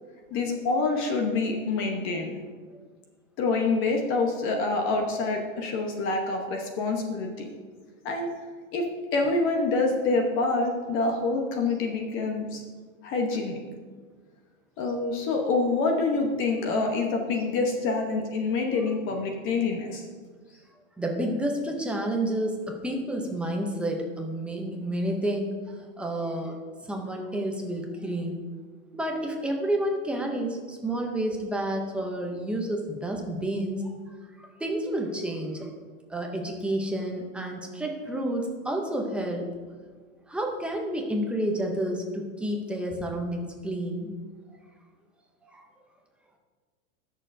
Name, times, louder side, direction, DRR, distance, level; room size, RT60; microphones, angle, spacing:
voice 1, 0.3-2.3 3.4-7.5 8.0-8.3 8.7-12.6 13.0-13.6 14.8-20.1, left 3 dB, 30° left, 2 dB, 0.9 m, -26 dB
voice 2, 21.0-26.6 26.8-28.4 28.9-34.0 34.4-35.7 36.1-39.5 40.3-44.1 45.4-45.7, right 1 dB, 5° right, 1 dB, 0.5 m, -30 dB
19.5 x 6.5 x 2.6 m, 1.5 s
supercardioid pair, 150°, 41 cm